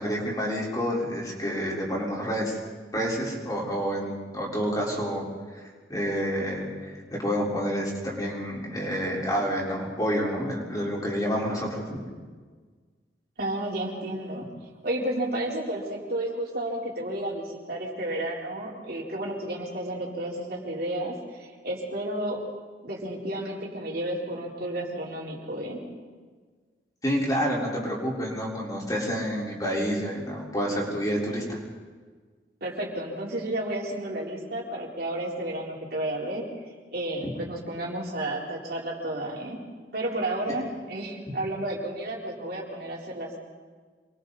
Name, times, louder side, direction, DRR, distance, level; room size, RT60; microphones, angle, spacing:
voice 1, 0.0-2.6 2.9-5.2 5.5-12.0 27.0-31.6 40.5-40.6, equal, 20° left, -4 dB, 4.5 m, -29 dB
voice 2, 13.4-22.4 22.8-25.8 32.6-36.4 36.9-39.6 39.9-43.4, right 1 dB, 60° right, -3 dB, 4.1 m, -32 dB
27.5 x 22.5 x 4.2 m, 1.5 s
head